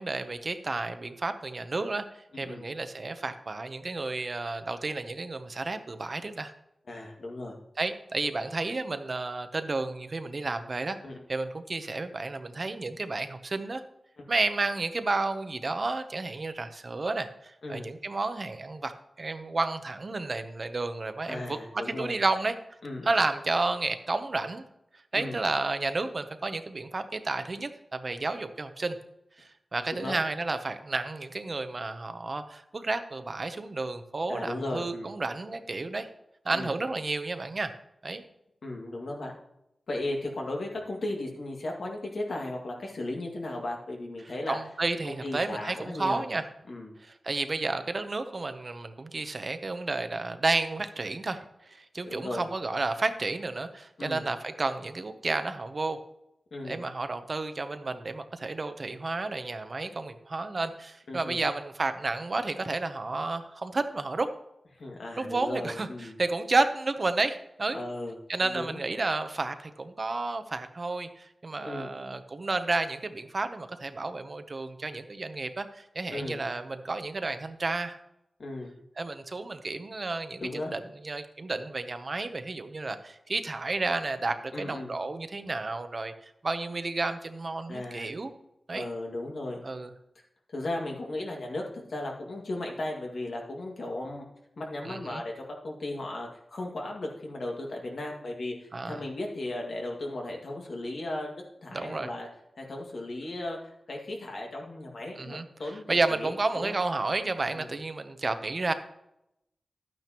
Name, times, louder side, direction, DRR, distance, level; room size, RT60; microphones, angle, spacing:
voice 1, 0.0-2.0 2.4-6.5 7.8-11.0 11.3-13.8 14.3-18.9 19.2-22.6 23.0-24.6 25.1-29.0 29.4-36.1 36.4-37.7 38.0-38.2 44.5-46.4 47.0-51.4 51.7-56.0 56.6-64.3 65.2-67.8 68.3-78.0 79.0-80.4 80.7-88.3 88.7-88.9 89.6-89.9 94.8-95.2 98.7-99.0 101.7-102.1 105.2-105.5 105.9-108.7, right 3 dB, 45° right, 9 dB, 0.8 m, -31 dB
voice 2, 2.3-2.7 6.9-7.5 11.0-11.2 17.6-17.8 21.3-22.1 22.8-23.1 25.1-25.4 29.9-30.2 34.3-35.1 36.5-36.7 38.6-39.3 39.9-44.6 45.0-46.2 46.7-46.9 52.1-52.4 54.0-54.2 56.5-56.8 61.1-61.4 64.8-66.2 67.7-68.2 68.4-68.8 71.6-71.9 76.1-76.4 78.4-78.7 80.4-80.7 84.5-84.9 87.7-88.1 88.7-89.6 90.5-94.3 94.6-102.3 102.6-106.7 107.5-107.7, left 2 dB, 75° left, 0 dB, 2.0 m, -36 dB
11.5 x 9.2 x 3.0 m, 0.83 s
wide cardioid pair, 75°, 0 cm